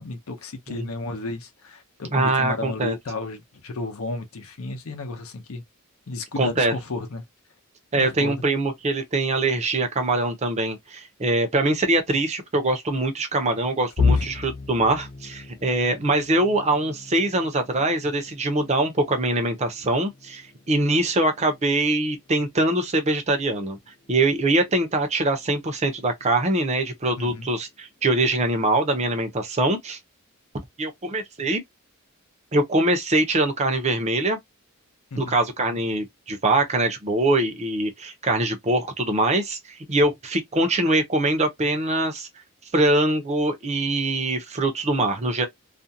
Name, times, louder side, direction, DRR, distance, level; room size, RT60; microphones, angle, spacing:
voice 1, 0.0-5.6 6.1-7.2 8.0-8.3 14.1-14.3 27.2-27.5 35.1-35.4, left 2 dB, 75° left, 0.7 m, -33 dB
voice 2, 2.1-3.0 6.4-6.7 7.9-23.8 24.1-30.0 30.8-31.6 32.5-34.4 35.1-42.3 42.7-45.5, right 2 dB, 30° right, 0.6 m, -23 dB
sound 1, 14.0-25.8 26.2-26.5 26.9-27.0 27.9-28.4, left 4 dB, 35° left, 0.4 m, -33 dB
2.5 x 2.1 x 2.7 m
head